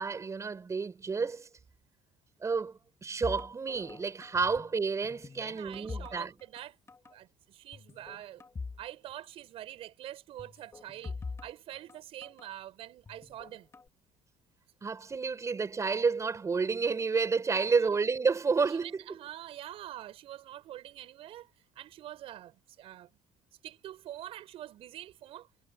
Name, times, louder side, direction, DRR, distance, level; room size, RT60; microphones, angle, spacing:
voice 1, 0.0-1.5 2.4-6.3 14.8-19.0, right 5 dB, 30° right, 5.9 m, -30 dB
sound 1, 3.2-4.8 5.0-6.6 6.9-7.1 7.7-8.8 9.1-9.2 10.4-12.5 13.1-13.9, left 4 dB, 25° left, 2.8 m, -43 dB
voice 2, 5.4-6.8 7.1-8.4 8.8-11.2 11.4-13.7 17.7-18.0 18.7-21.5 21.8-23.1 23.6-25.5, right 12 dB, 65° right, 5.9 m, -45 dB
supercardioid pair, 90°, 10 cm